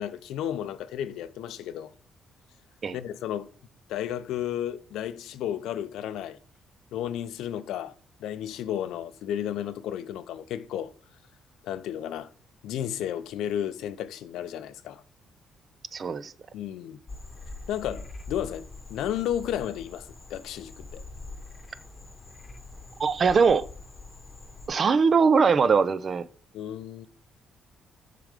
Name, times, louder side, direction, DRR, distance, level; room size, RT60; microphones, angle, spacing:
voice 1, 0.0-1.9 2.9-3.5 3.9-6.4 6.9-7.9 8.2-10.9 11.6-12.3 12.6-15.0 16.5-17.0 17.7-21.0 26.5-27.1, left 10 dB, 85° left, 0.5 m, -33 dB
voice 2, 15.9-16.3 23.0-23.7 24.7-26.3, right 5 dB, 45° right, 0.4 m, -21 dB
Frog, 17.1-24.7, left 3 dB, 25° left, 1.0 m, -44 dB
6.5 x 3.8 x 4.9 m
cardioid pair, 90°, 0 cm